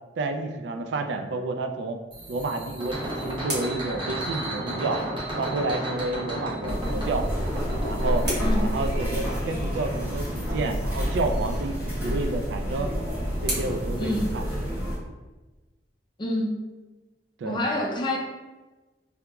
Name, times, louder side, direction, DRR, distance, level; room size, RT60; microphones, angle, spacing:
voice 1, 0.2-2.0 2.3-5.0 5.4-7.3 7.9-8.3 8.6-12.9 13.4-14.5 17.4-17.6, right 2 dB, 80° right, 6 dB, 0.3 m, -30 dB
sound 1, 2.1-9.1, right 1 dB, 30° right, 0.7 m, -33 dB
sound 2, 2.6-5.1 7.2-9.6 11.8-15.0, right 1 dB, 65° right, 1.1 m, -40 dB
sound 3, 6.7-15.0, equal, 10° right, 1.1 m, -28 dB
voice 2, 8.4-8.8 14.0-14.3 16.2-16.5 17.4-18.2, left 1 dB, 25° left, 0 dB, 0.5 m, -27 dB
3.4 x 2.9 x 2.3 m, 1.2 s
head